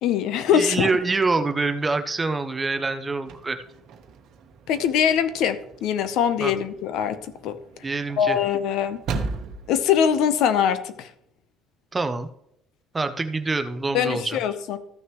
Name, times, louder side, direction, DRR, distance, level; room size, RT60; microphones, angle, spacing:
voice 1, 0.0-0.9 4.7-7.2 7.4-7.6 8.2-9.0 9.7-11.1 13.9-14.8, left 8 dB, 60° left, 12 dB, 0.7 m, -22 dB
voice 2, 0.5-3.6 6.4-6.5 7.8-8.4 11.9-12.3 12.9-14.4, right 3 dB, 15° right, 9 dB, 0.4 m, -25 dB
sound 1, 3.3-10.2, right 4 dB, 55° right, 1.0 m, -38 dB
14.0 x 6.3 x 3.0 m, 0.77 s
cardioid pair, 175°, 0 cm